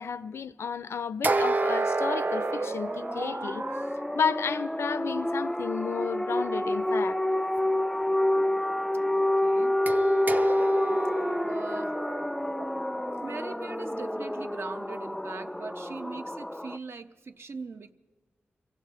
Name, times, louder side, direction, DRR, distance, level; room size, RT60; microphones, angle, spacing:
voice 1, 0.0-3.7 4.1-7.2 10.9-11.0, left 6 dB, 80° left, 0.4 m, -32 dB
sound 1, 1.2-3.9 9.9-13.9, right 3 dB, 45° right, 0.5 m, -30 dB
sound 2, 2.0-16.8, left 1 dB, 5° left, 0.4 m, -28 dB
voice 2, 9.1-9.8 11.4-12.0 13.2-17.9, right 4 dB, 70° right, 0.8 m, -40 dB
24.0 x 15.5 x 3.7 m
cardioid pair, 45°, 4 cm